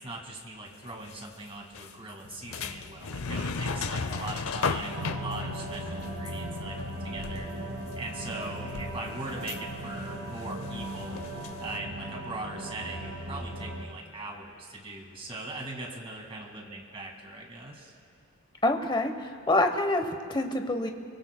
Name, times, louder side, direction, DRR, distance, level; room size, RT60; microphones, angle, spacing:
voice 1, 0.0-6.8 7.0-7.5 7.9-11.2 11.6-18.0, right 2 dB, 25° right, 1 dB, 1.9 m, -40 dB
sound 1, 0.8-1.3 1.7-8.0 8.3-11.8, left 4 dB, 75° left, 0.6 m, -36 dB
sound 2, 4.8-13.8, right 1 dB, 85° right, 2.0 m, -38 dB
voice 2, 18.6-20.9, left 2 dB, 20° left, 6 dB, 0.9 m, -26 dB
24.5 x 23.5 x 2.2 m, 2.3 s
head